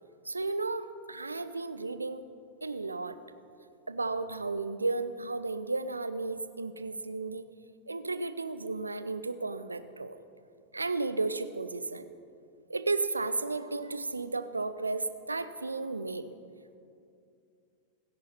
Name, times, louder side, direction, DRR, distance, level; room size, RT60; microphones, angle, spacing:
voice 1, 0.2-2.2 2.6-3.2 3.9-7.4 7.9-10.2 10.7-12.1 12.7-16.2, right 3 dB, 80° right, 12 dB, 0.7 m, -33 dB
29.5 x 10.5 x 4.3 m, 2.5 s
figure-of-eight pair, 90°, 0 cm